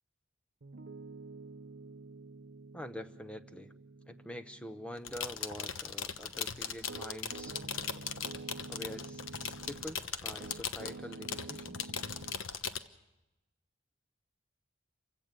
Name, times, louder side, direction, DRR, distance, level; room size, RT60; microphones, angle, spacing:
Piano, 0.6-10.0 10.4-12.4, right 3 dB, 60° right, 0.7 m, -49 dB
voice 1, 2.7-3.7 4.1-7.6 8.7-12.0, left 1 dB, 5° left, 7 dB, 0.7 m, -45 dB
sound 1, 5.0-12.8, left 7 dB, 85° left, 1.1 m, -39 dB
28.5 x 16.5 x 6.6 m, 0.98 s
head